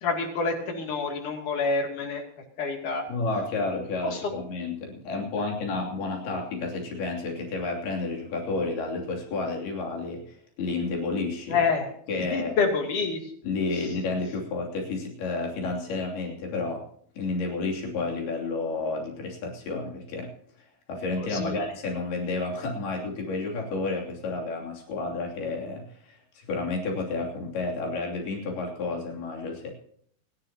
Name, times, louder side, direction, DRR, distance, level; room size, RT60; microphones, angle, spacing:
voice 1, 0.0-2.2 2.6-3.0 4.0-4.2 11.5-13.2 13.7-13.8 21.2-21.6, left 4 dB, 55° left, 2 dB, 4.0 m, -27 dB
voice 2, 3.1-11.6 12.1-12.6 13.4-16.8 17.2-20.3 20.9-29.7, left 3 dB, 80° left, 0 dB, 4.9 m, -31 dB
28.0 x 11.0 x 2.9 m, 0.63 s
omnidirectional pair, 4.4 m